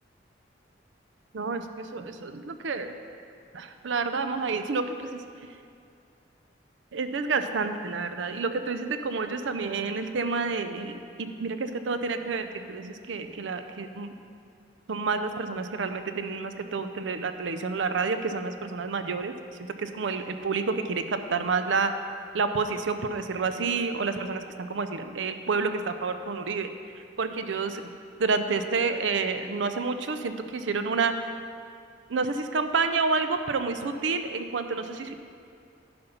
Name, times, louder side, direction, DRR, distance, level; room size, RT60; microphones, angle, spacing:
voice 1, 1.3-2.9 3.5-5.2 6.9-14.1 14.9-19.4 19.8-21.9 22.3-26.7 27.2-27.8 28.2-31.3 32.1-35.2, right 4 dB, 85° right, 8 dB, 0.5 m, -29 dB
11.0 x 5.2 x 5.7 m, 2.3 s
head